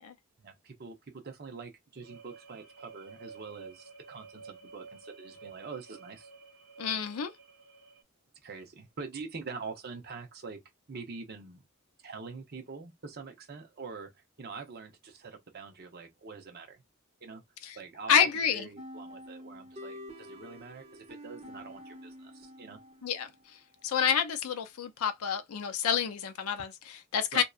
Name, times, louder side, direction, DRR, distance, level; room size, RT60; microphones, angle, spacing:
voice 1, 0.4-6.3 8.4-10.6 10.9-11.6 12.0-14.1 14.4-16.8 17.2-17.4 17.7-22.8 27.3-27.4, right 4 dB, 45° right, 0.6 m, -44 dB
sound 1, 2.0-8.0, right 4 dB, 85° right, 0.7 m, -52 dB
voice 2, 6.8-7.3 17.6-17.8 18.1-18.7 23.0-23.3 23.8-27.4, left 8 dB, 85° left, 0.4 m, -28 dB
sound 2, 18.8-23.4, left 1 dB, 30° right, 1.2 m, -48 dB
2.6 x 2.2 x 2.3 m
head